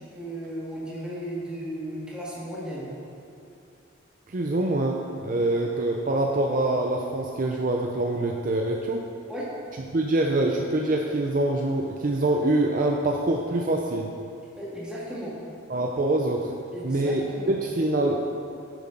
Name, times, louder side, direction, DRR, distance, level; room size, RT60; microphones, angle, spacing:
voice 1, 0.0-2.9 5.4-5.6 9.3-9.5 14.6-15.5 16.7-17.6, equal, 5° right, -7 dB, 1.7 m, -35 dB
voice 2, 4.3-9.0 9.9-14.1 15.7-16.5 16.8-17.2 17.5-18.2, right 2 dB, 40° right, 1 dB, 0.5 m, -25 dB
9.7 x 7.2 x 3.8 m, 2.6 s
head